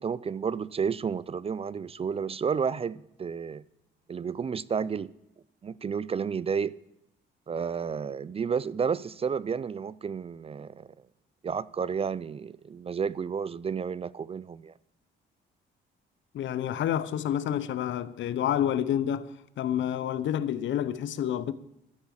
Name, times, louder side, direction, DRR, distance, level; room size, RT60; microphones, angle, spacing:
voice 1, 0.0-3.6 4.1-5.1 5.6-6.7 7.5-10.9 11.4-14.7, right 6 dB, 30° right, 0.4 m, -31 dB
voice 2, 16.3-19.3 19.6-21.5, left 10 dB, 70° left, 0.8 m, -28 dB
13.0 x 9.6 x 7.0 m
cardioid pair, 90°, 20 cm